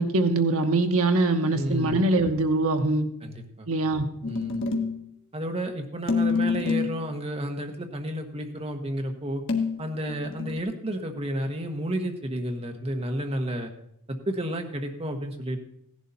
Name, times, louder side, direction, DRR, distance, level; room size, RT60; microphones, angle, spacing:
voice 1, 0.0-3.0 3.7-4.1, right 2 dB, 70° right, 6 dB, 1.1 m, -23 dB
voice 2, 1.5-2.0 3.2-3.7 4.3-4.6 5.3-9.4 9.8-13.7 14.1-15.6, right 1 dB, 25° right, 4 dB, 1.3 m, -31 dB
sound 1, 4.2-5.0 6.1-7.0 9.5-10.6, left 4 dB, 60° left, 1.5 m, -27 dB
16.5 x 11.0 x 4.2 m, 0.72 s
head